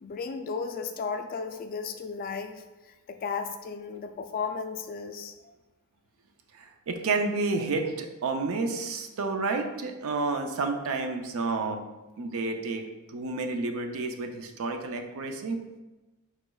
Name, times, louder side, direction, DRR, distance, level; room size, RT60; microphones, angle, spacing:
voice 1, 0.0-2.6 3.1-5.5, left 5 dB, 40° left, 7 dB, 0.3 m, -34 dB
voice 2, 6.5-11.8 12.2-12.8 13.1-15.6, right 3 dB, 65° right, 5 dB, 0.5 m, -30 dB
4.9 x 4.1 x 2.3 m, 1.1 s
head